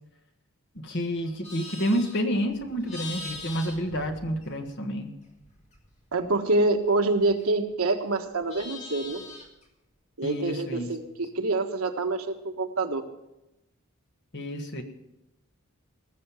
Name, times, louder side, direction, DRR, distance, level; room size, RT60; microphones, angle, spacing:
voice 1, 0.7-5.1 10.2-10.9 14.3-14.8, equal, 55° left, 4 dB, 1.6 m, -29 dB
Livestock farm animals working animals, 1.2-4.9 5.2-7.7 8.1-9.6, left 2 dB, 30° left, 2.2 m, -43 dB
voice 2, 6.1-9.2 10.2-13.0, right 2 dB, 90° right, 5 dB, 1.4 m, -26 dB
19.5 x 6.6 x 7.1 m, 0.92 s
head